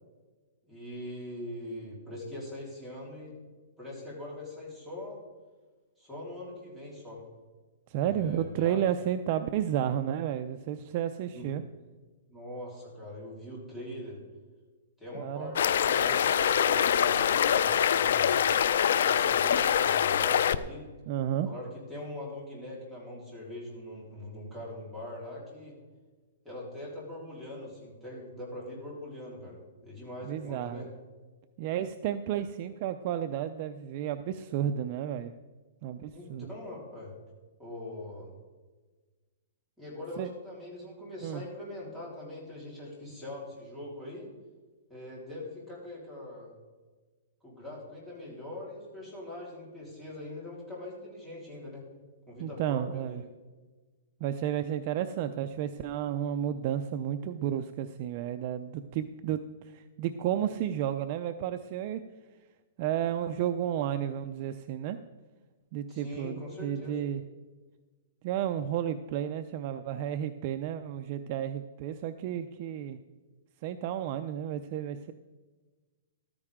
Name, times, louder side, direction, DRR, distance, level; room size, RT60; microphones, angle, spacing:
voice 1, 0.7-3.4 3.8-5.2 6.0-7.2 8.0-8.8 11.3-11.5 12.3-14.2 15.0-18.3 18.8-20.8 21.4-25.8 26.4-30.9 36.1-37.1 37.6-38.3 39.8-44.3 44.9-46.5 47.4-51.9 52.3-53.2 65.9-67.0, left 1 dB, ahead, -7 dB, 4.0 m, -42 dB
voice 2, 7.9-11.6 15.1-15.5 21.1-21.5 30.2-30.9 31.6-35.3 35.8-36.5 40.2-40.3 41.2-41.4 52.4-53.2 54.2-59.4 59.7-62.0 62.8-65.0 65.7-67.2 68.2-73.0 73.6-75.1, right 10 dB, 35° right, 9 dB, 0.5 m, -32 dB
sound 1, 15.6-20.6, left 8 dB, 65° left, 0.6 m, -24 dB
14.5 x 13.5 x 3.7 m, 1.3 s
hypercardioid pair, 165°, 0 cm